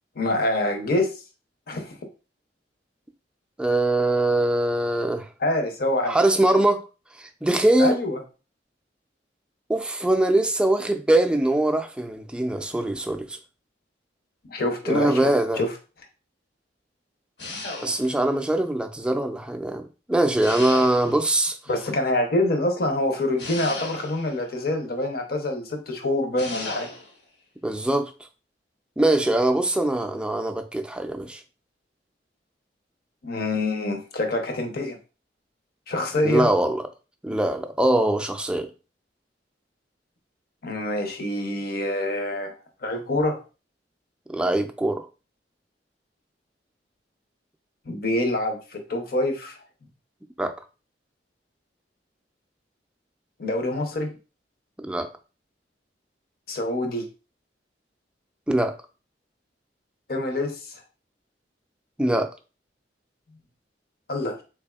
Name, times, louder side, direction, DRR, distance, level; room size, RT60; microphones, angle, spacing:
voice 1, 0.2-1.1 1.7-2.0 5.4-6.2 7.8-8.2 14.5-15.3 15.6-15.7 21.7-26.9 33.2-35.0 35.9-36.5 40.6-42.5 42.8-43.4 47.9-49.6 53.4-54.1 56.5-57.1 60.1-60.8 64.1-64.4, left 1 dB, 60° left, 0.7 m, -26 dB
voice 2, 3.6-5.3 6.1-6.8 7.2-8.0 9.7-13.4 14.9-15.6 17.8-21.6 27.6-28.1 29.0-31.4 36.2-36.8 37.2-38.7 44.3-45.1 50.4-50.6 54.8-55.1 58.5-58.8 62.0-62.3, right 1 dB, 5° right, 0.3 m, -22 dB
sound 1, 17.4-18.3 20.4-21.4 23.4-24.4 26.4-27.2, left 2 dB, 75° left, 1.1 m, -35 dB
3.6 x 3.3 x 2.3 m
head